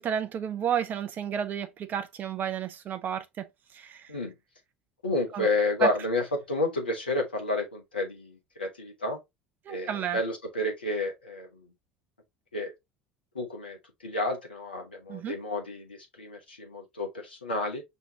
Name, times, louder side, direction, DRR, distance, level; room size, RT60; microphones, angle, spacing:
voice 1, 0.0-3.5 3.7-4.1 5.3-5.5 5.8-5.9 9.7-10.2 15.1-15.4, right 8 dB, 35° right, 0.6 m, -31 dB
voice 2, 5.0-9.2 9.7-11.5 12.5-12.7 13.3-13.8 14.0-17.8, left 2 dB, 80° left, 0.9 m, -30 dB
5.5 x 3.0 x 2.8 m
figure-of-eight pair, 65°, 5 cm